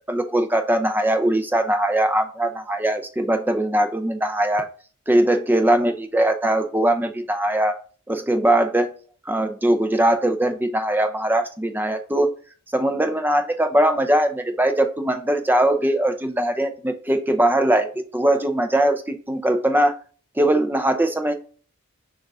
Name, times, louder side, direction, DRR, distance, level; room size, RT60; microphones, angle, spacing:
voice 1, 0.1-4.7 5.1-7.7 8.1-8.9 9.3-12.3 12.7-20.0 20.4-21.3, right 1 dB, 10° right, 7 dB, 0.5 m, -21 dB
6.3 x 2.5 x 3.4 m, 0.41 s
head